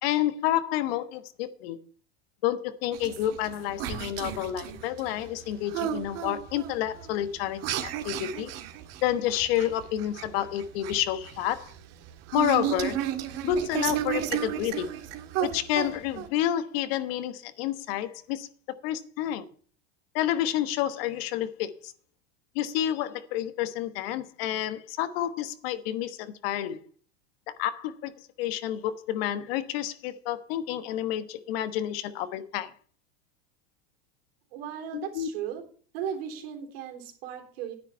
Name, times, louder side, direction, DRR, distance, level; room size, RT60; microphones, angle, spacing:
voice 1, 0.0-1.8 2.4-8.5 9.0-11.7 12.3-13.0 13.4-15.0 15.4-18.5 18.8-19.4 20.1-21.9 22.5-26.8 27.6-28.1 28.4-32.7 34.9-35.3, left 12 dB, 70° left, 1.3 m, -29 dB
sound 1, 2.9-16.3, right 11 dB, 55° right, 1.8 m, -33 dB
voice 2, 34.5-35.6 35.9-37.7, right 9 dB, 75° right, 3.5 m, -36 dB
10.0 x 9.2 x 5.5 m
supercardioid pair, 120°, 31 cm